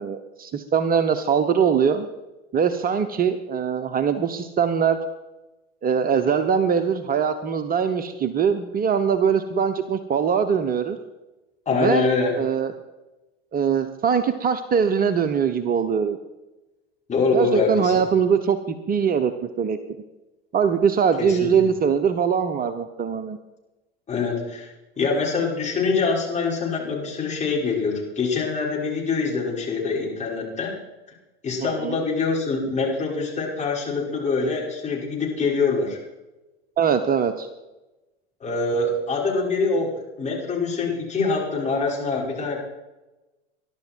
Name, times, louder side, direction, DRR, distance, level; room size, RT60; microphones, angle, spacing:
voice 1, 0.0-2.1 2.5-5.0 5.8-11.0 11.7-12.1 12.3-12.7 13.5-16.2 17.3-19.3 19.6-19.8 20.5-23.4 31.6-32.0 36.8-37.5, right 7 dB, 30° right, 9 dB, 1.0 m, -22 dB
voice 2, 11.7-12.3 17.1-18.1 21.2-21.6 24.1-30.7 31.4-36.0 38.4-42.6, left 4 dB, 25° left, -2 dB, 5.7 m, -24 dB
21.0 x 12.0 x 4.6 m, 1.1 s
hypercardioid pair, 85°, 30 cm